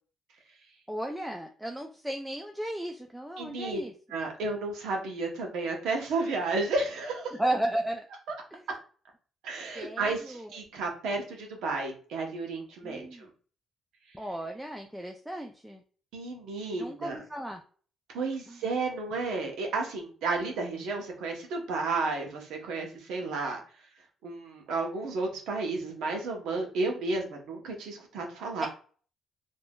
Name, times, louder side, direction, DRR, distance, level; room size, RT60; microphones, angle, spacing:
voice 1, 0.9-3.9 7.4-8.1 8.5-8.6 9.8-10.5 12.8-13.3 14.1-15.8 16.7-17.6 18.5-18.6 28.6-28.7, right 1 dB, 5° right, 3 dB, 0.4 m, -34 dB
voice 2, 3.4-3.8 4.1-7.3 9.4-13.3 16.1-17.2 18.1-23.6 24.2-28.7, right 3 dB, 85° right, 2 dB, 0.8 m, -32 dB
3.4 x 2.6 x 2.2 m, 0.42 s
cardioid pair, 90°, 0 cm